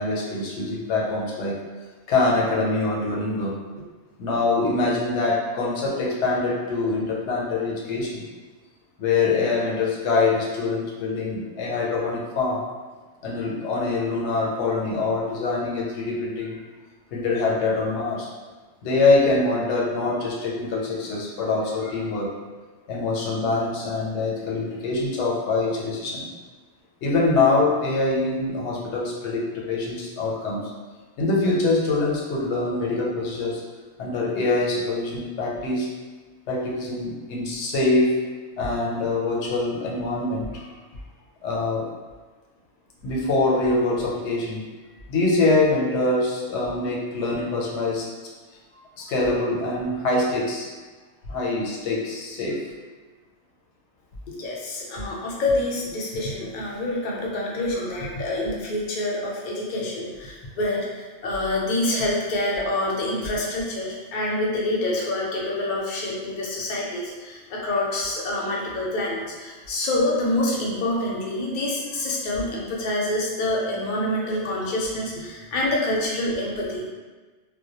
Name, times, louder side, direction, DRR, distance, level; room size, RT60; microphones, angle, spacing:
voice 1, 0.0-1.6 2.1-3.5 4.2-8.2 9.0-12.6 13.2-16.6 17.1-18.3 18.8-22.3 22.9-26.3 27.0-30.6 31.2-33.6 34.0-35.9 36.5-38.1 38.6-40.7 41.4-41.8 43.0-48.1 49.0-50.7 51.3-52.6 54.3-54.4 57.8-57.9, left 3 dB, 80° left, -3 dB, 0.9 m, -24 dB
voice 2, 54.4-76.9, left 1 dB, 55° left, -3 dB, 0.6 m, -27 dB
2.1 x 2.1 x 2.8 m, 1.3 s
omnidirectional pair, 1.2 m